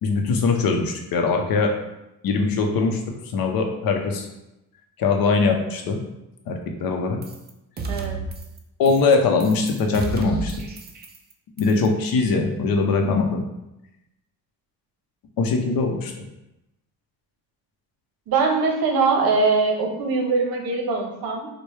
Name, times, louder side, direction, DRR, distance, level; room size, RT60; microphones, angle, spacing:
voice 1, 0.0-1.7 2.2-3.0 3.3-4.3 5.0-6.0 6.5-7.2 8.8-10.5 11.6-13.4 15.4-16.1, left 4 dB, 60° left, 3 dB, 0.7 m, -21 dB
sound 1, 7.2-7.5 7.8-8.6 8.8-9.1 9.4-11.3 11.6-11.9, right 3 dB, 25° right, 0.4 m, -32 dB
voice 2, 18.3-21.5, right 4 dB, 65° right, 1 dB, 0.9 m, -22 dB
4.5 x 2.2 x 3.2 m, 0.91 s
cardioid pair, 120°, 40 cm